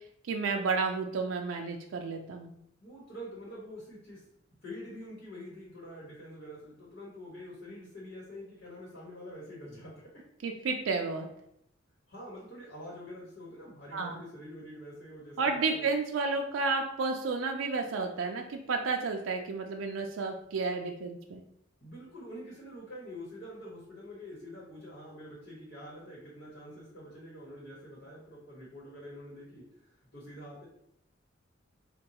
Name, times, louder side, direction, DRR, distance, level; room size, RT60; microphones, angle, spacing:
voice 1, 0.3-2.5 10.4-11.3 13.9-14.2 15.4-21.4, right 4 dB, 85° right, 3 dB, 0.4 m, -31 dB
voice 2, 2.8-4.2 4.6-10.2 12.1-15.9 21.8-30.7, equal, 65° left, -5 dB, 1.2 m, -46 dB
4.4 x 2.3 x 2.8 m, 0.75 s
head